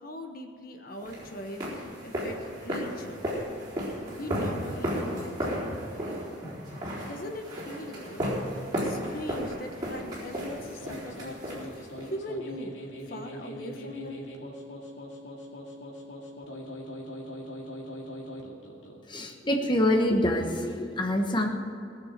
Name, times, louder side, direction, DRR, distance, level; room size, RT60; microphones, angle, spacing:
voice 1, 0.0-3.2 4.1-5.5 5.9-6.2 7.0-8.4 8.8-12.8 13.1-14.2, left 1 dB, 50° left, 5 dB, 1.2 m, -40 dB
sound 1, 1.0-12.1, equal, 20° right, 4.1 m, -34 dB
sound 2, 10.6-19.0, equal, 75° left, 2.3 m, -41 dB
voice 2, 19.1-21.5, left 1 dB, 25° left, 2 dB, 1.1 m, -25 dB
18.5 x 7.0 x 7.4 m, 2.7 s
head